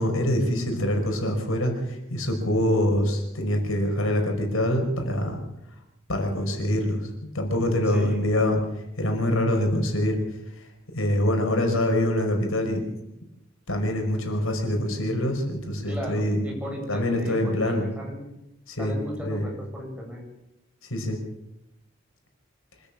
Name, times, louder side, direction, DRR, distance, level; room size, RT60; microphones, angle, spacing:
voice 1, 0.0-5.4 6.1-7.0 7.3-8.6 9.0-10.2 10.9-12.8 13.7-16.4 16.9-17.8 18.7-18.9 19.2-19.4 20.9-21.2, left 1 dB, 90° left, 3 dB, 5.5 m, -25 dB
voice 2, 15.8-18.2 18.8-20.2, equal, 5° right, -1 dB, 7.9 m, -36 dB
26.0 x 14.0 x 7.5 m, 0.89 s
head